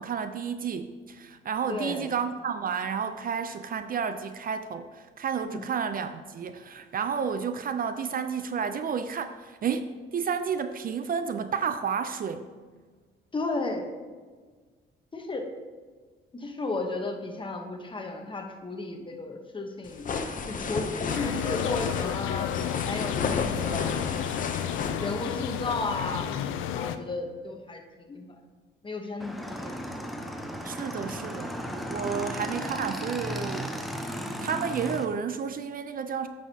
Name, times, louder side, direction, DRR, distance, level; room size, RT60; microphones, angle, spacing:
voice 1, 0.0-12.5 30.6-31.5 31.9-36.3, right 6 dB, 45° right, 10 dB, 0.4 m, -31 dB
voice 2, 1.7-2.1 5.4-5.7 13.3-13.9 15.1-15.5 16.3-20.1 20.5-22.5 22.9-23.9 25.0-26.3 26.7-27.8 28.1-28.3 28.8-29.8, left 2 dB, 25° left, 4 dB, 1.0 m, -33 dB
sound 1, 19.8-25.7, left 5 dB, 40° left, 0.7 m, -33 dB
sound 2, 21.1-27.0, left 9 dB, 85° left, 0.4 m, -31 dB
Motorcycle / Engine, 29.2-35.0, equal, ahead, 0.7 m, -35 dB
9.3 x 6.3 x 2.8 m, 1.5 s
cardioid pair, 90°, 20 cm